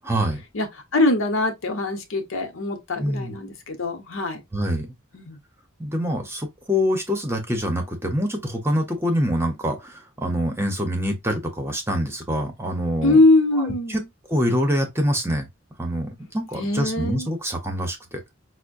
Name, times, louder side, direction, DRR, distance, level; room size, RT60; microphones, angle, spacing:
voice 1, 0.0-0.4 3.0-3.4 4.5-4.9 5.8-13.2 13.9-14.0 14.3-15.5 15.8-18.2, equal, 10° right, 0.9 m, -25 dB
voice 2, 0.9-4.4 5.1-5.4 13.0-14.0 16.6-17.3, left 2 dB, 65° left, 1.0 m, -22 dB
5.5 x 2.2 x 2.6 m
head